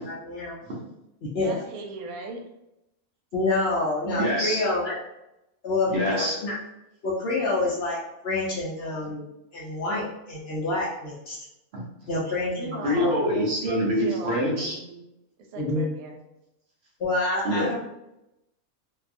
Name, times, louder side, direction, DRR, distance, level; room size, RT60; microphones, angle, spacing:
voice 1, 0.0-0.6 1.2-1.5 3.3-4.9 5.6-6.5 7.0-8.0 8.2-9.2 9.5-11.4 12.1-12.8 15.6-15.8 17.0-17.8, left 2 dB, 60° left, -5 dB, 0.7 m, -27 dB
voice 2, 1.4-2.4 12.6-15.1 15.4-16.2 17.5-17.6, right 3 dB, 85° right, 2 dB, 1.0 m, -38 dB
voice 3, 4.0-4.6 5.9-6.4 11.7-11.9 12.8-14.8 17.4-17.8, equal, 60° right, -3 dB, 0.8 m, -25 dB
2.6 x 2.3 x 2.5 m, 0.88 s
omnidirectional pair, 1.5 m